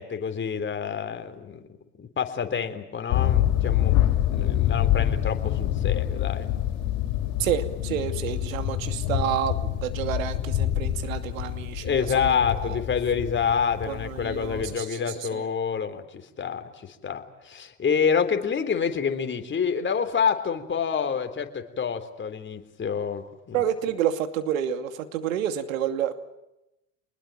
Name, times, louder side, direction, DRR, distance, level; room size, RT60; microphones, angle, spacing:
voice 1, 0.0-1.6 2.0-4.0 4.3-6.5 11.8-16.0 16.4-23.6, left 6 dB, 30° left, 7 dB, 3.7 m, -27 dB
sound 1, 3.1-14.8, left 12 dB, 60° left, 4.0 m, -26 dB
voice 2, 7.4-12.8 13.9-15.5 23.5-26.1, right 10 dB, 80° right, 9 dB, 2.6 m, -29 dB
27.0 x 21.0 x 9.1 m, 0.92 s
hypercardioid pair, 85°, 40 cm